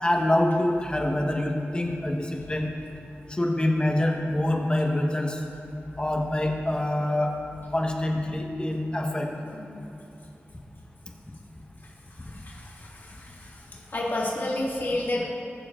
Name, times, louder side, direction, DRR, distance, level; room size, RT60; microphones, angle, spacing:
voice 1, 0.0-2.6 3.4-5.4 6.0-7.3 7.7-9.3, left 1 dB, 20° left, 0 dB, 1.0 m, -25 dB
voice 2, 12.2-13.5 13.9-15.2, left 1 dB, 50° left, -5 dB, 1.9 m, -30 dB
20.5 x 6.9 x 2.5 m, 2.7 s
wide cardioid pair, 100°, 5 cm